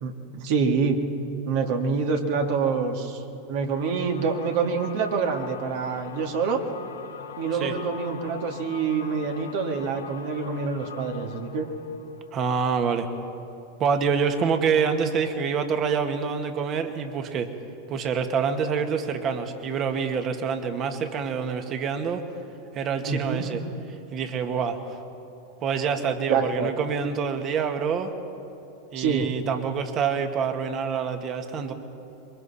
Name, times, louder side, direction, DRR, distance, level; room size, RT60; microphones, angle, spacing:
voice 1, 0.0-1.0 1.5-3.2 3.5-6.6 7.4-11.7 23.1-23.5 26.3-26.7 29.0-29.3, right 5 dB, 60° right, 2 dB, 2.2 m, -26 dB
sound 1, 3.7-13.4, left 7 dB, 80° left, 1.3 m, -42 dB
voice 2, 12.3-13.1 13.8-17.5 17.9-22.2 22.7-23.6 24.1-25.0 25.6-28.1 28.9-31.7, right 6 dB, 35° right, 6 dB, 1.9 m, -26 dB
26.5 x 23.0 x 4.3 m, 2.8 s
hypercardioid pair, 100°, 0 cm